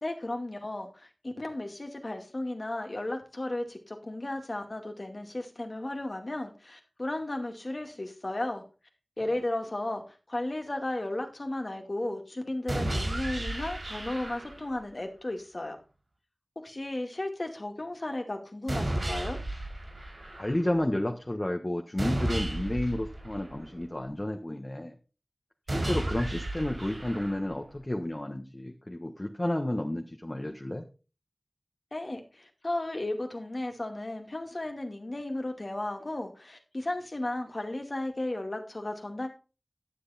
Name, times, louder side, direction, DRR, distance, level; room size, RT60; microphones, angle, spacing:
voice 1, 0.0-8.6 9.2-15.8 16.6-19.4 31.9-39.3, left 1 dB, 55° left, 4 dB, 2.3 m, -34 dB
sound 1, 12.7-14.7 18.7-20.7 22.0-24.0 25.7-27.7, right 1 dB, 80° right, 5.5 m, -33 dB
voice 2, 20.4-25.0 25.7-30.8, left 1 dB, 35° left, 3 dB, 1.4 m, -31 dB
11.5 x 7.9 x 4.3 m, 0.33 s
wide cardioid pair, 45°, 0 cm